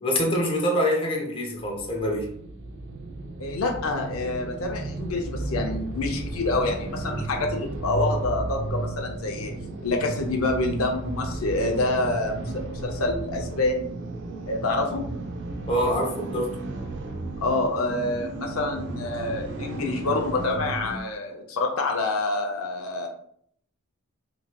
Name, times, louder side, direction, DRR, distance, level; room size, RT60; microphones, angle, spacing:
voice 1, 0.0-2.3 15.7-16.6, equal, 25° left, 0 dB, 0.6 m, -25 dB
sound 1, 1.5-21.0, right 2 dB, 55° right, 0.4 m, -34 dB
voice 2, 3.4-9.5 9.8-13.9 14.5-15.0 17.4-23.1, left 2 dB, 80° left, 2 dB, 0.5 m, -27 dB
3.0 x 2.8 x 2.2 m, 0.65 s
head